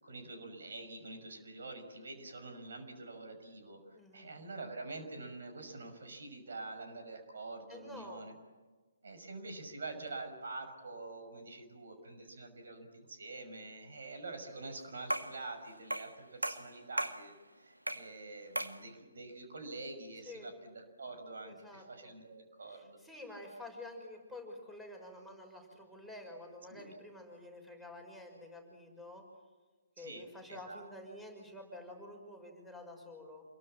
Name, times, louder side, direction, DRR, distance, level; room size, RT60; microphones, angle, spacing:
voice 1, 0.0-8.3 9.0-23.0 26.7-26.9 30.0-30.8, right 3 dB, 60° right, 6 dB, 6.0 m, -46 dB
voice 2, 3.9-4.3 7.7-8.2 20.3-20.5 21.4-22.1 22.7-29.2 30.0-33.4, left 1 dB, ahead, 2 dB, 5.8 m, -49 dB
sound 1, 15.1-15.4 15.9-16.2 16.4-17.2 17.9-18.1 18.6-18.8, right 1 dB, 85° right, 2.0 m, -36 dB
28.5 x 23.0 x 7.5 m, 1.3 s
figure-of-eight pair, 135°, 0 cm